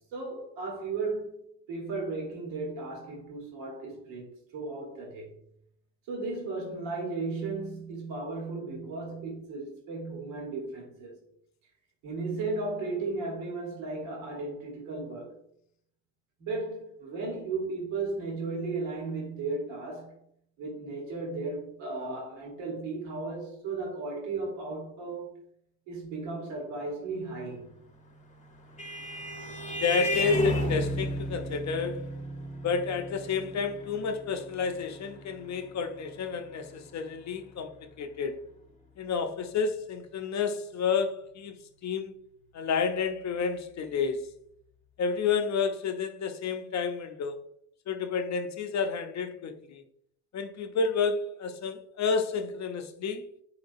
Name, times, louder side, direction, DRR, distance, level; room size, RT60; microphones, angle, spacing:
voice 1, 0.1-1.4 1.7-5.3 6.1-11.2 12.0-15.3 16.4-20.2 20.6-25.3 25.9-27.7, right 3 dB, 70° right, 1.7 m, -35 dB
Vehicle horn car horn honking, 28.2-37.1, equal, 15° left, 0.9 m, -34 dB
voice 2, 29.8-32.0 32.6-38.4 39.0-41.6 41.8-42.1 42.5-44.3 45.0-47.4 47.9-49.8 50.3-53.2, left 5 dB, 35° left, 0.6 m, -30 dB
4.5 x 3.7 x 2.6 m
hypercardioid pair, 60°, 48 cm